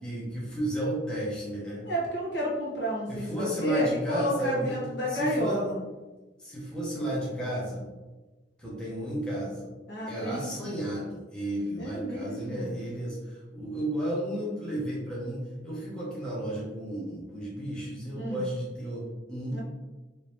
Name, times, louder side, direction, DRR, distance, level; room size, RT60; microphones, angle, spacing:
voice 1, 0.0-1.8 3.1-4.8 5.1-5.6 6.4-7.8 8.6-9.7 10.1-19.6, right 1 dB, 5° left, -7 dB, 0.9 m, -33 dB
voice 2, 1.8-5.8 9.9-10.5 11.8-12.7 18.1-18.4 19.5-19.6, equal, 65° left, -5 dB, 1.1 m, -31 dB
3.5 x 2.7 x 3.1 m, 1.2 s
head